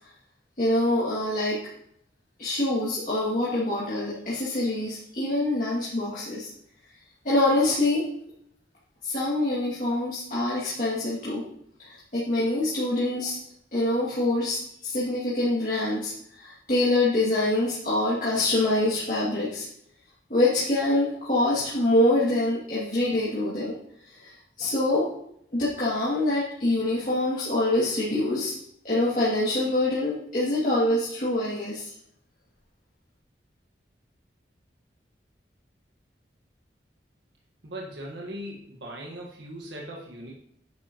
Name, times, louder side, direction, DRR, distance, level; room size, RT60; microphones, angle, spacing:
voice 1, 0.6-1.6 2.4-6.5 7.2-8.1 9.0-11.4 11.8-13.4 13.7-19.7 20.3-23.8 24.1-25.1 25.5-28.5 28.8-31.9, left 1 dB, 45° left, -9 dB, 2.5 m, -25 dB
voice 2, 37.6-40.3, right 1 dB, 85° right, -2 dB, 1.6 m, -39 dB
10.0 x 8.9 x 3.0 m, 0.72 s
head